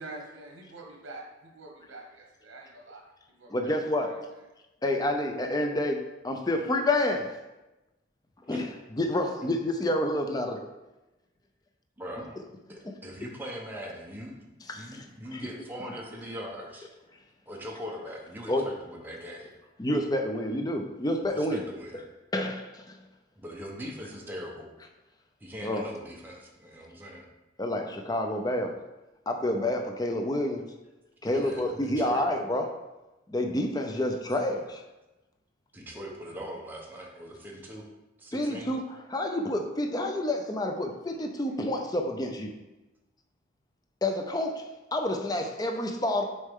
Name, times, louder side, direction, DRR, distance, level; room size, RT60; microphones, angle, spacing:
voice 1, 0.0-3.1 3.4-4.2, right 2 dB, 80° right, 1 dB, 1.0 m, -46 dB
voice 2, 3.5-4.3 4.8-7.4 8.5-10.6 12.8-12.9 13.2-13.3 14.7-15.0 15.3-15.5 18.5-18.7 19.8-21.6 22.3-22.8 25.6-25.8 27.6-28.8 29.3-30.7 31.2-32.8 33.3-34.8 38.3-38.8 39.1-42.5 44.0-46.2, left 1 dB, 20° left, 4 dB, 0.5 m, -29 dB
voice 3, 12.0-12.4 12.7-14.4 14.7-16.9 17.5-19.5 21.3-22.0 23.4-24.7 25.4-27.3 31.2-32.3 35.7-37.8 38.2-38.8, equal, 10° right, -2 dB, 0.9 m, -41 dB
6.5 x 4.3 x 3.6 m, 1.0 s
head